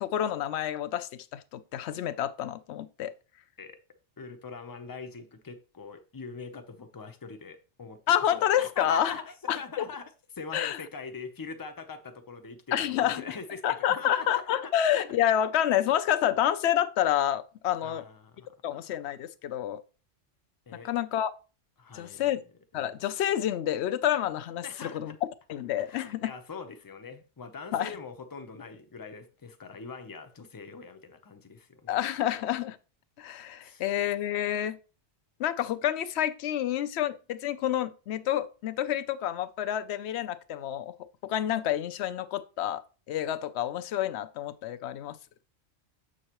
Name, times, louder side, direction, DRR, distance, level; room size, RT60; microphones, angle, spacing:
voice 1, 0.0-3.1 8.1-9.1 9.5-9.8 10.5-10.8 12.7-13.2 13.6-18.0 18.6-19.8 20.8-21.3 21.9-22.4 22.7-25.1 25.5-26.3 27.7-27.9 31.9-32.8 33.2-34.8 35.4-40.9 41.2-45.2, left 11 dB, 70° left, 0.8 m, -28 dB
voice 2, 4.2-8.2 8.6-14.7 17.8-18.5 20.7-20.9 21.8-22.5 24.6-25.2 25.8-32.0 33.6-33.9, left 4 dB, 25° left, 0.6 m, -43 dB
7.5 x 6.3 x 3.0 m
omnidirectional pair, 1.2 m